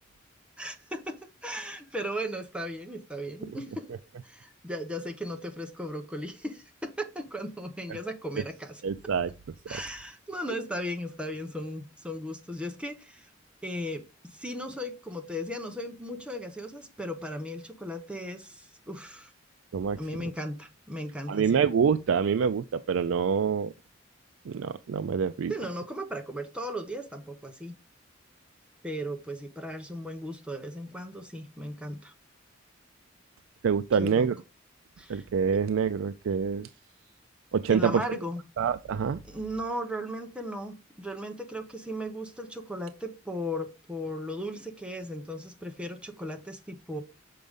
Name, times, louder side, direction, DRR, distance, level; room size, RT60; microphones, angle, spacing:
voice 1, 0.6-3.9 4.2-8.8 9.7-13.3 13.6-19.3 20.0-21.6 25.5-27.8 28.8-32.1 34.0-34.3 35.0-35.2 37.7-38.4 39.2-47.0, equal, 5° right, 0.9 m, -36 dB
voice 2, 8.8-9.3 19.7-20.0 21.3-23.7 24.5-25.5 33.6-34.4 35.1-36.7 37.5-38.0 38.6-39.2, right 6 dB, 80° right, 0.4 m, -26 dB
6.6 x 5.1 x 3.6 m
head